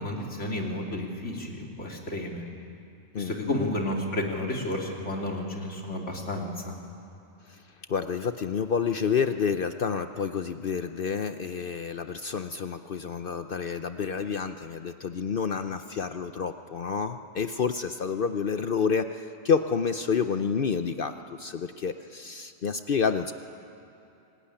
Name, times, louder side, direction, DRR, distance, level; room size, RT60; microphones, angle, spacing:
voice 1, 0.0-2.4 3.2-6.8, left 1 dB, 80° left, 0 dB, 3.3 m, -31 dB
voice 2, 3.1-3.5 7.5-7.6 7.9-23.3, left 6 dB, 55° left, 9 dB, 0.8 m, -29 dB
26.0 x 17.5 x 9.9 m, 2.8 s
omnidirectional pair, 1.2 m